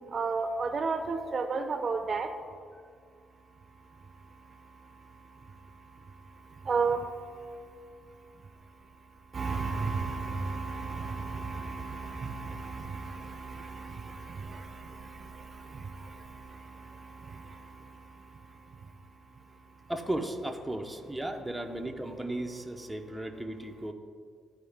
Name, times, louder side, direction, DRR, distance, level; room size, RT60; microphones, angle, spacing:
voice 1, 0.1-2.3 4.5-7.6 9.3-18.9, right 4 dB, 40° right, 7 dB, 0.6 m, -35 dB
voice 2, 19.9-23.9, right 1 dB, 5° right, 3 dB, 0.7 m, -35 dB
13.0 x 4.7 x 3.5 m, 2.1 s
cardioid pair, 90°, 0 cm